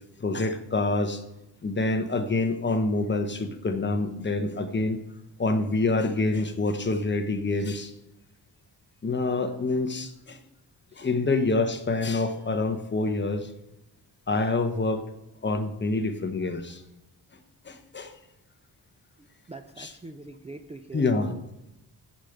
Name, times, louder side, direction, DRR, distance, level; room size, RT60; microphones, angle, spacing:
voice 1, 0.2-1.2 1.6-5.0 5.4-7.9 9.0-10.4 11.0-13.5 14.3-15.0 15.4-16.8 17.6-18.1 19.8-19.9 20.9-21.3, left 3 dB, 25° left, 8 dB, 0.9 m, -26 dB
voice 2, 19.2-21.4, right 3 dB, 15° right, 8 dB, 0.4 m, -44 dB
14.0 x 5.1 x 7.9 m, 0.93 s
wide cardioid pair, 150°, 41 cm